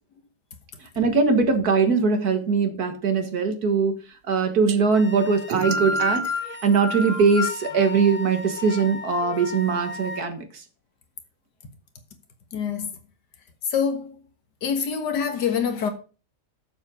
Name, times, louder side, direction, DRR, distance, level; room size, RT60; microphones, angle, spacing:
voice 1, 1.0-4.0 4.3-6.2 6.6-10.6, right 5 dB, 60° right, 2.0 m, -21 dB
sound 1, 4.7-4.8 5.5-7.7, right 9 dB, 75° right, 1.5 m, -36 dB
sound 2, 4.9-10.2, left 2 dB, 25° left, 0.8 m, -31 dB
voice 2, 12.5-12.9 13.7-14.2 14.6-15.9, left 7 dB, 70° left, 2.0 m, -25 dB
7.7 x 7.3 x 6.3 m
omnidirectional pair, 1.9 m